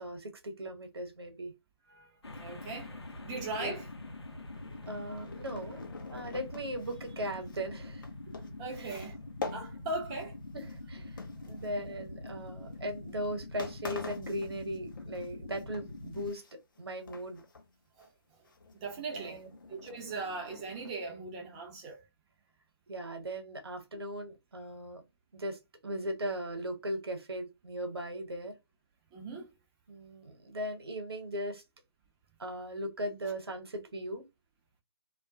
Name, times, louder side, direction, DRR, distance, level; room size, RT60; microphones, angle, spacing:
voice 1, 0.0-1.5 3.2-3.7 4.9-5.8 6.1-8.0 8.8-9.1 10.5-16.4 16.8-17.4 18.9-19.5 22.9-25.0 25.3-28.5 29.9-31.6 32.4-34.2, equal, 70° right, 0.9 m, -38 dB
sound 1, 2.2-16.3, left 2 dB, 90° left, 0.7 m, -45 dB
voice 2, 2.4-2.9 3.3-3.9 8.6-9.2 9.5-10.4 18.0-18.1 18.8-19.4 19.7-22.0 29.1-29.5, right 3 dB, 15° right, 0.5 m, -39 dB
sound 2, 4.2-10.3 10.6-12.1 12.7-12.9 13.3-13.4 13.6-15.3 15.6-16.8 17.1-17.7 18.0-18.1 18.5-20.9, left 4 dB, 50° left, 0.6 m, -46 dB
2.3 x 2.0 x 2.6 m
figure-of-eight pair, 150°, 14 cm